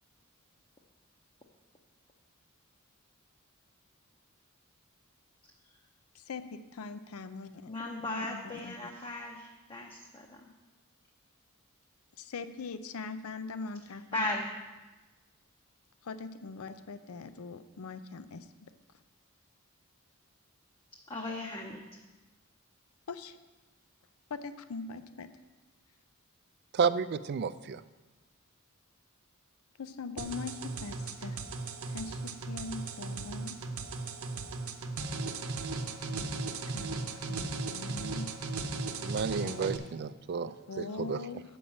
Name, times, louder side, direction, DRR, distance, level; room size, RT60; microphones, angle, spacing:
voice 1, 6.2-7.7 8.3-8.7 12.2-14.3 16.0-18.4 23.1-23.4 24.3-25.3 29.8-31.4 31.9-33.6 36.1-36.4 36.7-37.0 37.3-38.3 39.0-39.8 40.7-41.4, left 4 dB, 80° left, 12 dB, 0.5 m, -42 dB
voice 2, 7.7-10.5 13.9-14.5 21.1-21.8, left 2 dB, 25° left, 0 dB, 0.7 m, -37 dB
voice 3, 26.7-27.8 39.0-41.4, right 6 dB, 50° right, 14 dB, 0.3 m, -32 dB
sound 1, 30.2-39.8, right 3 dB, 80° right, 0.8 m, -37 dB
8.5 x 5.4 x 7.0 m, 1.2 s
head